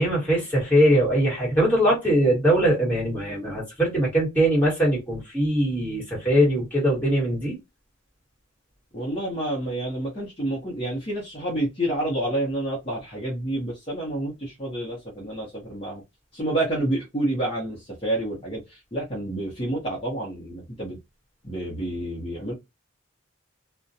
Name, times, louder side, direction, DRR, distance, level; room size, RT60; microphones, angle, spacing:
voice 1, 0.0-7.6, right 1 dB, 10° left, 1.4 m, -21 dB
voice 2, 8.9-16.0 16.3-21.0 21.4-22.5, right 1 dB, 30° left, 0.7 m, -29 dB
2.4 x 2.1 x 2.6 m
head